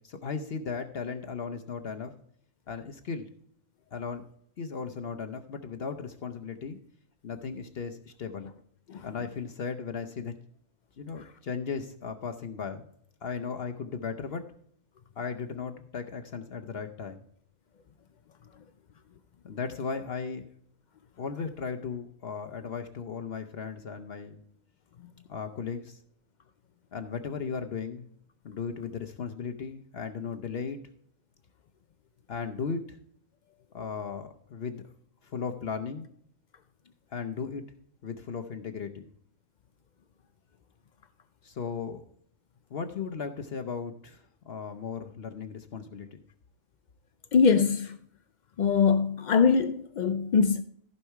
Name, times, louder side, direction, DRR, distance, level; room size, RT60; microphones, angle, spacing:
voice 1, 0.0-2.1 2.7-3.3 3.9-4.2 4.6-6.8 7.2-8.5 9.0-10.3 11.0-12.9 13.2-14.4 15.2-17.2 19.4-20.5 21.2-24.4 25.3-26.0 26.9-28.1 28.4-30.8 32.3-33.0 33.7-34.8 35.2-36.1 37.1-37.6 38.0-39.1 41.4-42.0 42.7-46.2, left 5 dB, 55° left, 0.9 m, -36 dB
voice 2, 47.3-48.0 48.6-50.6, left 5 dB, 70° left, 0.4 m, -23 dB
14.5 x 5.6 x 4.6 m
omnidirectional pair, 1.3 m